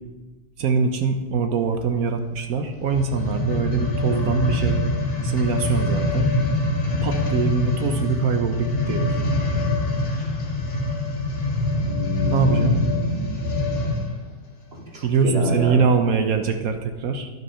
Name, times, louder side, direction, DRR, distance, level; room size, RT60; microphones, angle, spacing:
voice 1, 0.6-4.8 5.2-6.3 7.0-9.2 12.3-12.8 15.0-17.3, right 5 dB, 65° right, 7 dB, 1.0 m, -23 dB
sound 1, 2.8-14.2 14.8-14.9, left 1 dB, 35° left, 1.6 m, -24 dB
voice 2, 11.8-13.6 14.7-15.8, right 1 dB, 35° right, 0 dB, 1.6 m, -29 dB
10.5 x 5.8 x 5.5 m, 1.2 s
omnidirectional pair, 2.0 m